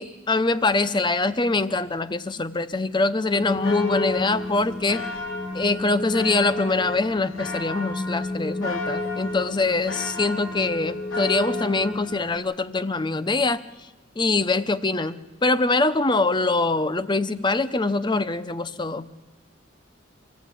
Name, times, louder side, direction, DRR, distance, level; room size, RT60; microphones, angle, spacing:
voice 1, 0.0-5.0 5.5-13.6 14.2-19.1, left 3 dB, 25° left, 13 dB, 0.7 m, -24 dB
sound 1, 3.3-12.4, left 2 dB, 80° left, 3.9 m, -31 dB
25.0 x 15.5 x 8.3 m, 1.2 s
head